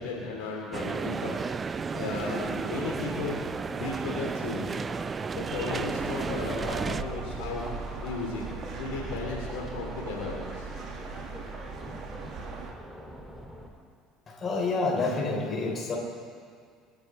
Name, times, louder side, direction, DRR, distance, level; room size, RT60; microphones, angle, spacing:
voice 1, 0.0-1.4 1.9-3.4 3.7-4.6 5.3-7.6 8.0-8.4 8.8-10.7, left 3 dB, 65° left, -3 dB, 3.2 m, -35 dB
sound 1, 0.7-7.0, right 5 dB, 30° right, 0.5 m, -33 dB
sound 2, 2.7-13.7, equal, 5° right, 2.6 m, -46 dB
sound 3, 5.5-12.7, right 4 dB, 45° right, 1.8 m, -39 dB
voice 2, 14.3-16.0, left 3 dB, 35° left, -1 dB, 4.0 m, -28 dB
28.0 x 10.5 x 3.3 m, 2.1 s
figure-of-eight pair, 60°, 0 cm